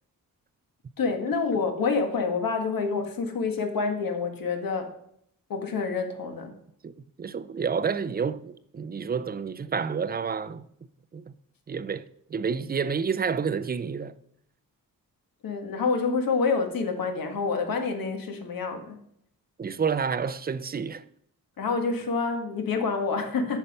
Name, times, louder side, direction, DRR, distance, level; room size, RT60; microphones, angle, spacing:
voice 1, 1.0-4.9 5.5-6.5 15.4-19.0 21.6-23.6, left 4 dB, 70° left, 1.7 m, -27 dB
voice 2, 6.8-10.6 11.1-11.3 11.7-14.2 19.6-21.0, right 6 dB, 25° right, 0.5 m, -29 dB
14.0 x 5.8 x 5.4 m
wide cardioid pair, 175°, 35 cm